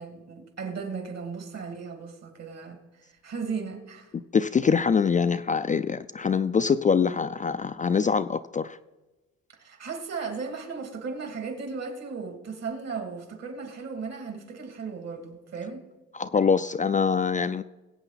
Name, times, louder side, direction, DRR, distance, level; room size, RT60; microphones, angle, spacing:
voice 1, 0.0-4.1 9.6-15.8, right 5 dB, 60° right, 2.5 m, -36 dB
voice 2, 4.3-8.8 16.1-17.6, left 6 dB, 25° left, 0.4 m, -24 dB
21.5 x 8.2 x 4.0 m
cardioid pair, 90°, 30 cm